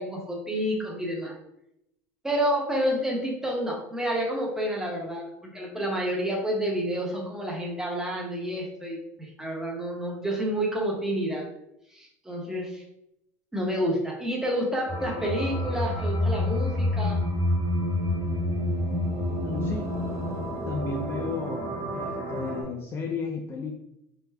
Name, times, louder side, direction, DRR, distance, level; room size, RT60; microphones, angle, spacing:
voice 1, 0.0-1.4 2.2-11.5 11.9-12.8 13.5-17.2, equal, 5° right, -2 dB, 0.8 m, -29 dB
sound 1, 14.9-22.6, left 1 dB, 40° right, 1.4 m, -28 dB
voice 2, 19.4-20.0 20.7-23.8, left 4 dB, 30° left, 2 dB, 0.4 m, -33 dB
3.3 x 2.1 x 3.3 m, 0.81 s
supercardioid pair, 120°, 8 cm